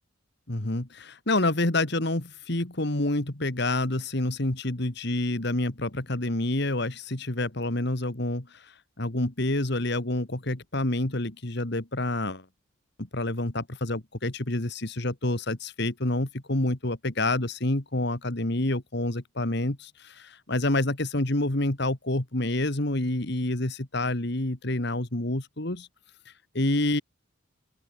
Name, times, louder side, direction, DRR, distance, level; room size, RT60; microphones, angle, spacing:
voice 1, 0.5-8.6 9.0-12.4 13.0-25.9 26.5-27.0, left 2 dB, 55° left, 2.1 m, -28 dB
open air
head